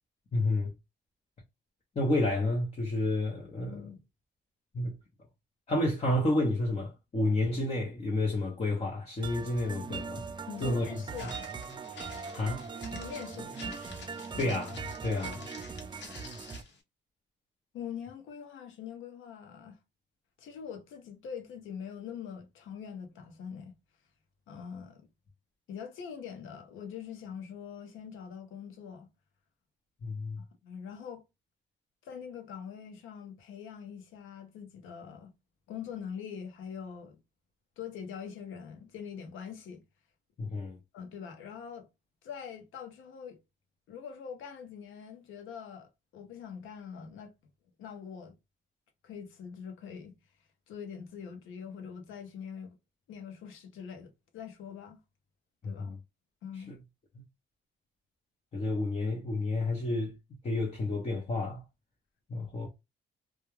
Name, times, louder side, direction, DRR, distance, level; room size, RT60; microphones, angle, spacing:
voice 1, 0.3-0.7 2.0-3.8 4.7-4.9 5.7-10.2 10.6-11.0 12.3-12.7 14.4-15.5 30.0-30.4 40.4-40.8 55.6-56.0 56.7-56.8 58.5-60.1 60.4-61.6 62.3-62.7, left 2 dB, 30° left, 0.8 m, -30 dB
voice 2, 3.7-4.0 10.5-11.4 12.9-14.6 17.7-19.8 20.4-23.7 24.5-25.1 25.7-29.1 30.6-31.2 32.0-35.3 35.7-37.2 37.8-39.8 40.9-41.9 42.2-43.4 43.9-47.3 47.8-48.3 49.0-50.1 50.7-52.8 53.1-55.0 55.6-55.9 56.4-56.8, left 7 dB, 85° left, 0.8 m, -43 dB
sound 1, 9.2-16.6, right 5 dB, 25° right, 0.4 m, -40 dB
Walk footsteps, 11.1-16.8, left 4 dB, 65° left, 1.0 m, -50 dB
2.3 x 2.3 x 3.0 m
cardioid pair, 90°, 20 cm